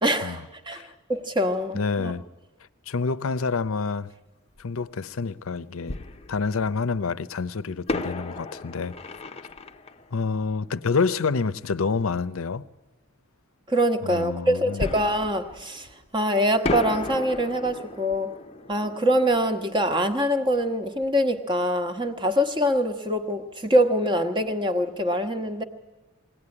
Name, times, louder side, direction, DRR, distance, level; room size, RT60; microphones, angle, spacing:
voice 1, 0.0-0.8 1.1-2.1 13.7-15.9 16.1-18.3 18.7-25.6, equal, 20° right, 1.2 m, -24 dB
voice 2, 1.7-2.2 2.9-4.1 4.6-6.0 6.3-8.9 10.1-12.7 14.0-14.9, left 4 dB, 75° left, 0.6 m, -27 dB
Fireworks, 4.6-4.7 5.9-7.0 7.9-11.3 14.8-16.2 16.6-21.2 21.4-21.5 22.1-22.3, left 2 dB, 30° left, 0.7 m, -35 dB
22.0 x 17.0 x 9.8 m
head